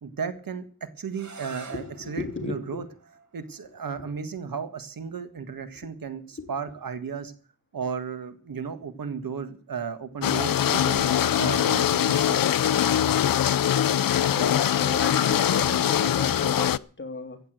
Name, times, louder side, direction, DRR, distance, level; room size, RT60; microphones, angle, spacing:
voice 1, 0.0-2.8 3.3-7.3 7.7-11.1 11.4-12.4, right 6 dB, 85° right, 10 dB, 1.7 m, -34 dB
sound 1, 1.1-6.8, right 4 dB, 55° right, 2.5 m, -50 dB
voice 2, 1.7-2.6 4.0-4.1 5.8-5.9 6.4-6.5 14.2-17.4, left 3 dB, 35° left, 6 dB, 3.0 m, -34 dB
sound 2, 10.2-16.8, left 10 dB, 80° left, 0.6 m, -22 dB
15.0 x 8.9 x 7.7 m, 0.41 s
wide cardioid pair, 110°, 34 cm